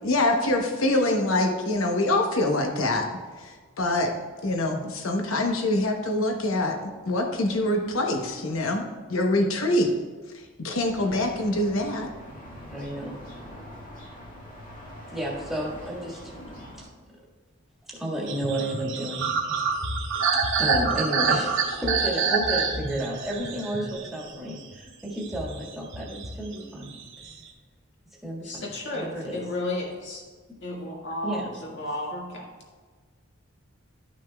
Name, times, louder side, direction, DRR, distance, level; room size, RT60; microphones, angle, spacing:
voice 1, 0.0-3.1 3.4-4.1 4.4-8.8 9.1-9.9 10.6-12.1, left 1 dB, 85° left, 3 dB, 0.9 m, -25 dB
sound 1, 10.8-16.8, equal, 40° left, 2.0 m, -43 dB
voice 2, 12.7-13.2 15.1-16.4 16.8-16.9 17.9-19.3 20.1-20.2 20.6-27.0 28.2-29.5 31.2-31.5, right 1 dB, ahead, -4 dB, 1.7 m, -32 dB
sound 2, 18.3-24.7 25.2-26.6 26.8-27.5, right 5 dB, 70° right, 1.2 m, -27 dB
voice 3, 28.4-30.2 30.6-32.5, left 2 dB, 60° left, -3 dB, 1.9 m, -33 dB
12.0 x 6.3 x 2.3 m, 1.4 s
head